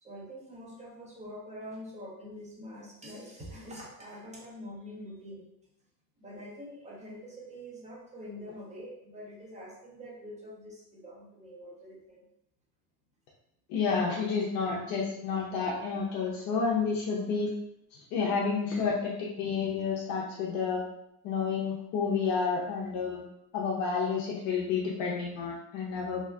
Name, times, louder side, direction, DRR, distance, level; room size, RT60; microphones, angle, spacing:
voice 1, 0.0-5.5 6.2-12.2, equal, 20° right, -4 dB, 0.6 m, -45 dB
voice 2, 13.7-17.5 17.9-20.8 21.2-23.2 23.5-26.2, left 5 dB, 60° left, -3 dB, 0.6 m, -30 dB
2.8 x 2.3 x 3.4 m, 0.79 s
cardioid pair, 165°, 39 cm